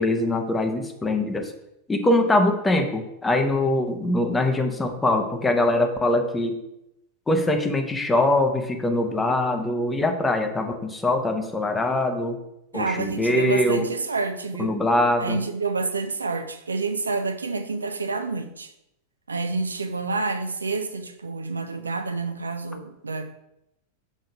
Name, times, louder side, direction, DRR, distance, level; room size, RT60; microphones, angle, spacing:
voice 1, 0.0-1.5 1.9-6.6 7.3-12.4 12.7-13.9 14.6-15.4, left 1 dB, 10° left, 0.8 m, -23 dB
voice 2, 12.7-14.8 15.2-18.7 19.3-23.3, right 3 dB, 75° right, 0.6 m, -28 dB
6.1 x 3.8 x 5.4 m
figure-of-eight pair, 90°, 0 cm